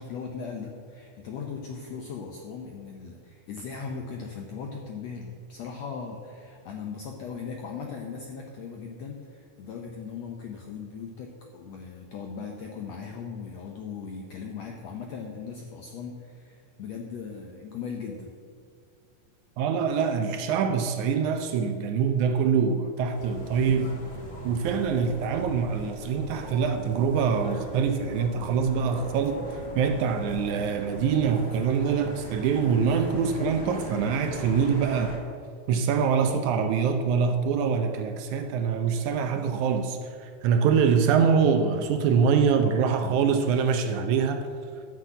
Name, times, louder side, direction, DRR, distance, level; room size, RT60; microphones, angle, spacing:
voice 1, 0.0-18.3, left 5 dB, 85° left, 1.4 m, -38 dB
voice 2, 19.6-24.0 24.4-35.2 35.7-44.5, right 6 dB, 80° right, 1.8 m, -24 dB
sound 1, 23.1-35.2, equal, 40° left, 1.9 m, -40 dB
12.0 x 6.1 x 9.1 m
omnidirectional pair, 4.3 m